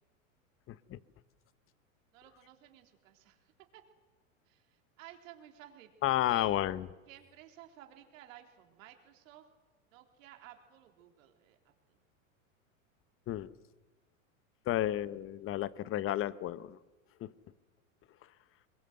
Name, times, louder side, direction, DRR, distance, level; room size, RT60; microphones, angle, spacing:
voice 1, 0.7-1.0 6.0-6.9 13.3-13.5 14.7-16.8 17.2-17.3, left 13 dB, 30° left, 17 dB, 0.9 m, -32 dB
voice 2, 2.1-3.8 4.5-5.9 6.3-6.5 7.1-9.4 9.9-11.6 11.9-12.0 14.7-14.9, right 12 dB, 70° right, 4 dB, 3.6 m, -55 dB
22.5 x 22.0 x 8.0 m, 1.2 s
hypercardioid pair, 110°, 41 cm